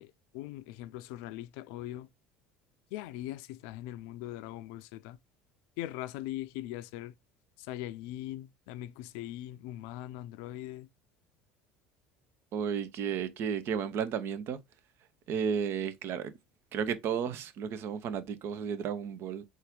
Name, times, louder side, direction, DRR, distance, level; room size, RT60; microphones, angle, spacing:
voice 1, 0.0-2.1 2.9-5.2 5.8-7.1 7.6-10.9, left 14 dB, 70° left, 0.4 m, -41 dB
voice 2, 12.5-14.6 15.3-16.3 16.7-19.4, right 7 dB, 55° right, 0.6 m, -33 dB
4.0 x 2.5 x 3.7 m
hypercardioid pair, 70°, 5 cm